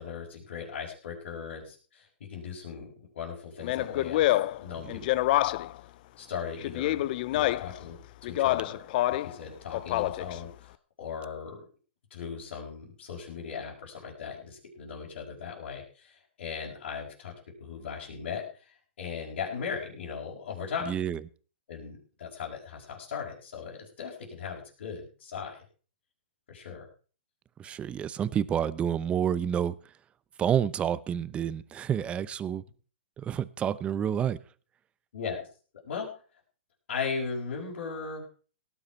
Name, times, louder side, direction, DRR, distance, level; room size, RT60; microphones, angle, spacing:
voice 1, 0.0-5.0 6.2-7.0 7.3-8.8 9.2-11.7 12.1-17.3 17.6-20.9 21.7-25.6 26.5-26.9 35.1-35.4 35.8-36.1 36.9-38.3, left 6 dB, 70° left, 5.1 m, -38 dB
Speech, 3.6-5.8 6.6-7.8 8.2-9.3 9.7-10.4, left 15 dB, 45° left, 0.5 m, -27 dB
voice 2, 20.8-21.2 27.6-29.7 30.4-32.6 33.2-34.4, right 9 dB, 15° right, 0.7 m, -29 dB
18.0 x 9.9 x 4.6 m
hypercardioid pair, 140°, 7 cm